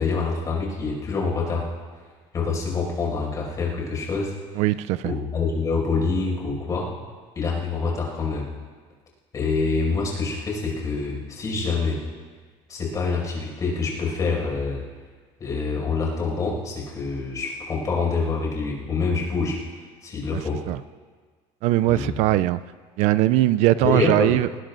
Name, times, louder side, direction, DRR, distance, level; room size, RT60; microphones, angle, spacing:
voice 1, 0.0-1.6 2.3-4.3 5.0-6.9 7.4-8.5 9.3-12.0 12.7-14.8 15.4-19.6 20.0-20.6 21.9-22.2 23.8-24.4, left 4 dB, 25° left, -2 dB, 5.5 m, -26 dB
voice 2, 4.6-5.1 20.3-20.4 20.7-20.8 21.6-22.6 23.0-24.5, right 15 dB, 65° right, 15 dB, 0.4 m, -20 dB
20.5 x 19.5 x 2.5 m, 1.5 s
cardioid pair, 160°, 13 cm